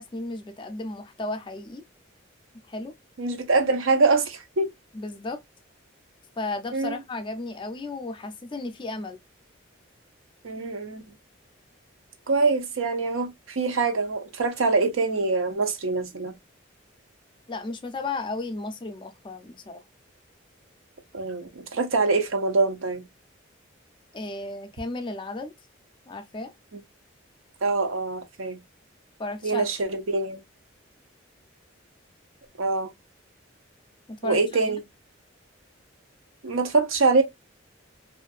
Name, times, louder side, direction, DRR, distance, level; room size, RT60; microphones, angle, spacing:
voice 1, 0.0-1.8 2.7-2.9 4.9-5.4 6.4-9.2 17.5-19.8 24.1-25.5 26.1-26.5 29.2-29.7 34.1-34.8, left 2 dB, 25° left, 0.4 m, -34 dB
voice 2, 3.2-4.7 6.7-7.0 10.4-11.0 12.3-16.3 21.1-23.1 27.6-28.6 29.4-30.4 32.6-32.9 34.2-34.8 36.4-37.2, right 3 dB, 90° right, 0.7 m, -24 dB
2.6 x 2.5 x 2.2 m
head